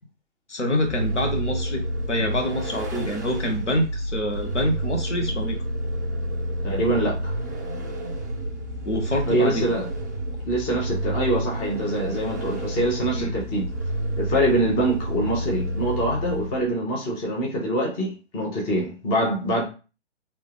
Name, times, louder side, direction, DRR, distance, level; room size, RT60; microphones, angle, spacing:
voice 1, 0.5-1.8 2.1-5.6 8.8-9.7 13.1-13.3, left 1 dB, 75° left, 1.3 m, -26 dB
Vehicle, 0.8-16.7, right 1 dB, 15° right, 0.4 m, -29 dB
voice 2, 6.6-7.3 9.3-9.9 10.5-13.7 14.2-19.6, right 1 dB, 15° left, 1.0 m, -24 dB
3.3 x 3.0 x 3.5 m
figure-of-eight pair, 130°, 35 cm